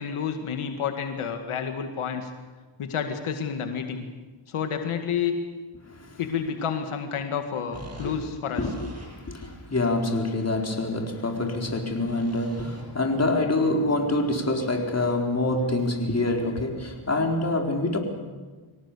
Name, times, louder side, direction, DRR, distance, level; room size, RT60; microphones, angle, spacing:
voice 1, 0.0-2.3 2.8-4.1 4.5-5.4 6.2-8.7, left 7 dB, 85° left, 5 dB, 2.1 m, -30 dB
sound 1, 7.7-9.7 10.2-11.5 11.9-13.0 13.8-13.9, right 1 dB, 30° right, 7.7 m, -45 dB
voice 2, 9.3-18.0, left 2 dB, 30° left, 2 dB, 4.3 m, -26 dB
25.0 x 17.5 x 8.5 m, 1.3 s
cardioid pair, 75°, 49 cm